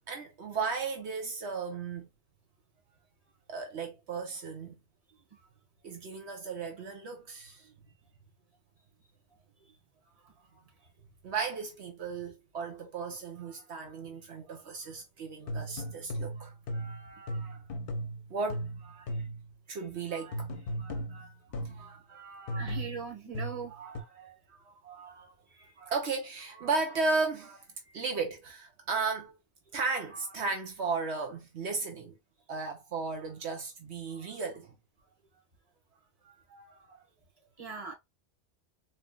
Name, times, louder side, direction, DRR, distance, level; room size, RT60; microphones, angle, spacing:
voice 1, 0.1-2.1 3.5-4.8 5.8-7.7 11.2-17.6 18.3-19.2 19.7-20.5 20.8-22.8 23.7-29.3 29.7-32.1 32.5-34.7 36.2-37.0, right 4 dB, 75° right, 1.1 m, -36 dB
sound 1, 15.5-19.5 20.3-21.9 22.5-24.0, equal, 60° left, 0.8 m, -37 dB
voice 2, 22.6-23.7 37.6-37.9, right 5 dB, 35° right, 1.5 m, -39 dB
4.1 x 3.2 x 2.3 m
omnidirectional pair, 1.1 m